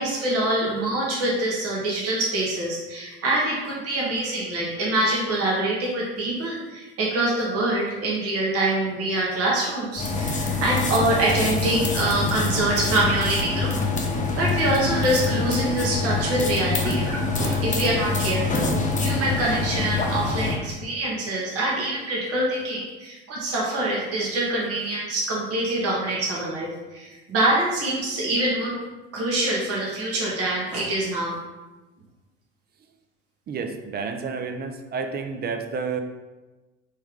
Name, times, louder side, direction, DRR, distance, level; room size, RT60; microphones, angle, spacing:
voice 1, 0.0-13.9 14.4-18.7 19.0-28.8 29.1-31.4, right 1 dB, 45° right, -4 dB, 1.5 m, -25 dB
sound 1, 9.9-20.6, left 3 dB, 25° left, 0.9 m, -25 dB
voice 2, 33.5-36.0, right 5 dB, 30° right, 6 dB, 0.6 m, -30 dB
4.3 x 3.4 x 3.6 m, 1.2 s
hypercardioid pair, 65°, 33 cm